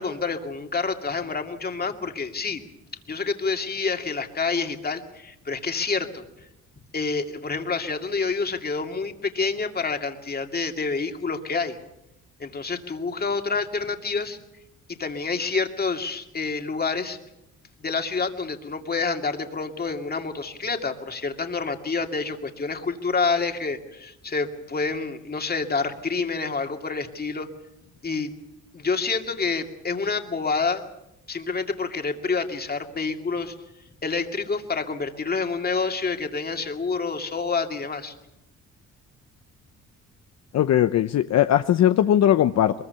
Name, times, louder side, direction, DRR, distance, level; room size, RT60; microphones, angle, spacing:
voice 1, 0.0-2.6 3.1-6.2 6.9-11.8 12.4-14.4 15.0-17.2 17.8-27.5 28.0-28.3 28.7-30.8 31.3-33.5 34.0-38.1, left 4 dB, 30° left, 5 dB, 2.4 m, -28 dB
voice 2, 40.5-42.7, left 11 dB, 60° left, 10 dB, 0.8 m, -19 dB
22.5 x 21.5 x 7.0 m, 0.89 s
cardioid pair, 90°, 30 cm